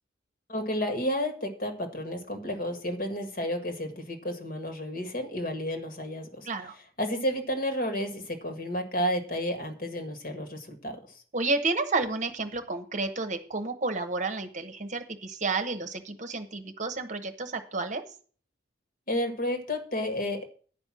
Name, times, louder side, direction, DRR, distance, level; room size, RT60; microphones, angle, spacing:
voice 1, 0.5-6.5 7.0-11.2 19.1-20.5, equal, 45° left, 6 dB, 1.7 m, -31 dB
voice 2, 6.4-6.7 11.3-18.0, right 3 dB, 40° right, 9 dB, 1.0 m, -31 dB
10.0 x 5.3 x 7.5 m, 0.43 s
head